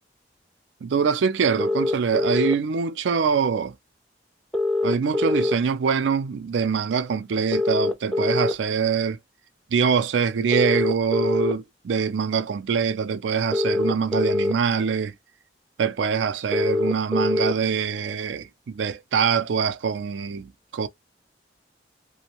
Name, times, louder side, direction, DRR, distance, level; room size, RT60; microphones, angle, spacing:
voice 1, 0.8-3.7 4.8-9.2 9.7-15.1 15.8-20.9, right 6 dB, 85° right, 0.4 m, -24 dB
sound 1, 1.6-2.6 4.5-5.6 7.5-8.5 10.5-11.5 13.5-14.5 16.5-17.5, left 2 dB, 5° left, 0.3 m, -23 dB
2.5 x 2.1 x 2.9 m
head